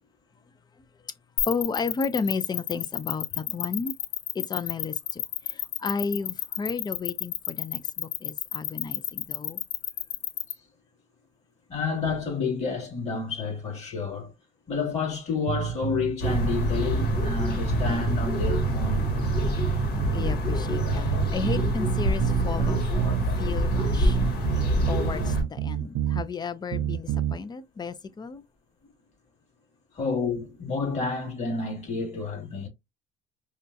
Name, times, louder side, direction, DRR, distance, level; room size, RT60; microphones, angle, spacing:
sound 1, 1.4-10.5, left 14 dB, 90° left, 0.6 m, -30 dB
voice 1, 1.4-3.9 4.3-9.6 20.1-24.2 24.9-28.4, left 5 dB, 25° left, 0.5 m, -33 dB
voice 2, 11.7-14.3 14.7-19.1 29.9-32.7, left 4 dB, 40° left, 2.4 m, -30 dB
sound 2, 15.5-17.3 17.7-20.3 20.7-23.3 23.7-26.3 26.7-27.4, right 11 dB, 70° right, 0.4 m, -29 dB
sound 3, 16.2-25.4, equal, 75° left, 1.7 m, -26 dB
5.0 x 2.2 x 2.7 m
cardioid pair, 110°, 17 cm